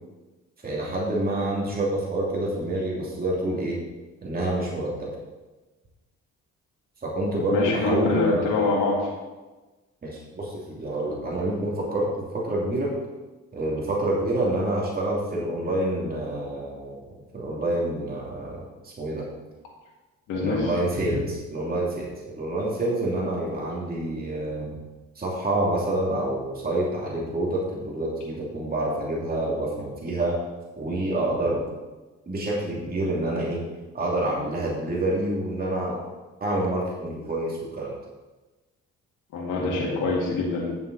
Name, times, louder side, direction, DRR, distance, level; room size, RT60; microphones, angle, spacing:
voice 1, 0.6-3.8 4.2-5.2 7.0-8.5 10.0-12.9 13.5-17.0 17.3-19.3 20.3-24.8 25.2-30.4 30.8-31.7 32.3-33.6 33.9-36.0 36.4-38.0 39.5-40.1, right 1 dB, 30° right, -4 dB, 2.7 m, -27 dB
voice 2, 7.5-9.1 20.3-20.7 39.3-40.7, left 3 dB, 90° left, -3 dB, 2.3 m, -24 dB
11.0 x 7.3 x 4.1 m, 1.2 s
cardioid pair, 90°, 30 cm